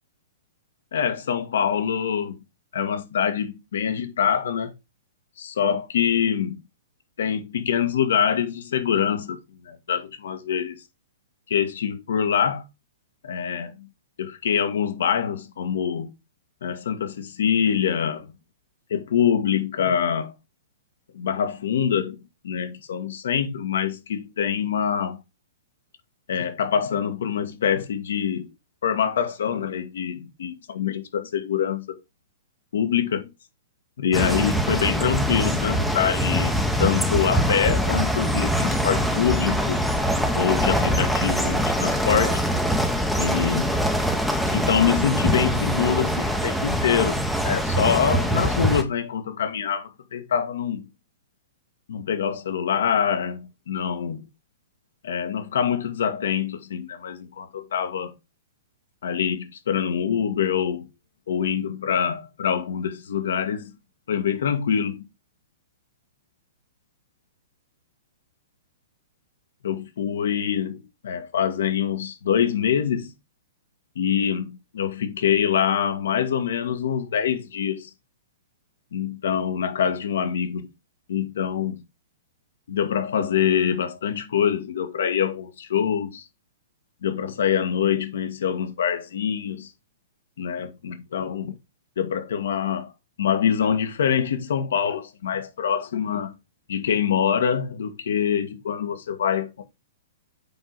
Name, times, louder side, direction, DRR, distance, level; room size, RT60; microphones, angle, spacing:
voice 1, 0.9-2.4 2.7-4.7 5.4-6.6 7.2-9.4 9.7-10.8 11.5-12.7 13.2-13.9 14.2-16.1 16.6-18.4 18.9-20.3 21.1-22.2 22.4-25.2 26.3-28.5 28.8-32.0 32.7-33.3 34.0-39.8 40.4-42.4 43.2-43.7 44.5-50.8 51.9-54.2 55.0-58.1 59.0-60.9 61.3-63.8 64.1-65.1 69.6-73.1 74.0-77.9 78.9-80.7 81.1-81.8 82.7-86.3 87.0-89.7 90.4-91.5 92.0-92.9 93.2-96.3 96.7-99.6, left 8 dB, 75° left, 1.8 m, -25 dB
sound 1, 34.1-48.8, equal, ahead, 0.9 m, -23 dB
7.7 x 4.8 x 4.1 m
hypercardioid pair, 160°, 0 cm